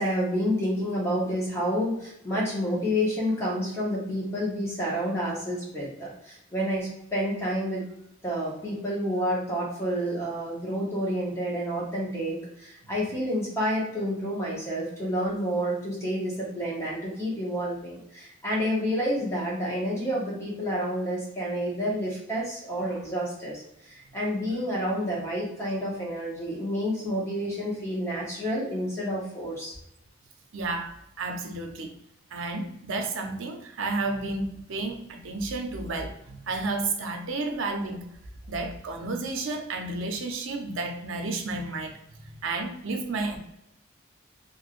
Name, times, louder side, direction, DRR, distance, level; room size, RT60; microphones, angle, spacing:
voice 1, 0.0-7.9 8.2-29.8, equal, 15° left, -5 dB, 0.9 m, -29 dB
voice 2, 30.5-31.9 32.3-38.0 38.5-43.4, right 3 dB, 75° right, 4 dB, 0.6 m, -32 dB
3.1 x 2.6 x 2.5 m, 0.79 s
head